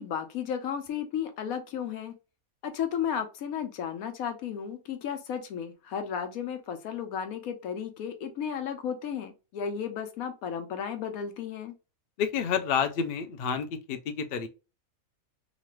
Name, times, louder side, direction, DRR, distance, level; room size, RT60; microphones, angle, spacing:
voice 1, 0.0-2.1 2.6-11.7, left 8 dB, 80° left, 1.1 m, -34 dB
voice 2, 12.2-14.5, left 7 dB, 65° left, 0.6 m, -29 dB
3.0 x 2.5 x 2.9 m
omnidirectional pair, 1.5 m